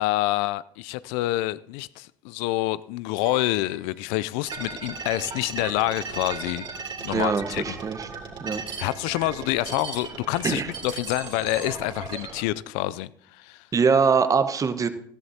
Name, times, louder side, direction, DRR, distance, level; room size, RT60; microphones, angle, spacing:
voice 1, 0.0-6.7 7.0-7.8 8.8-13.1 13.4-13.6, left 17 dB, 70° left, 0.4 m, -27 dB
sound 1, 3.2-4.7, right 1 dB, 75° right, 4.1 m, -46 dB
sound 2, 4.5-12.4, right 5 dB, 45° right, 2.8 m, -36 dB
voice 2, 7.1-8.1 8.4-8.6 10.4-10.7 13.7-14.9, right 5 dB, 30° right, 1.1 m, -23 dB
15.5 x 14.0 x 2.8 m
hypercardioid pair, 65°, 11 cm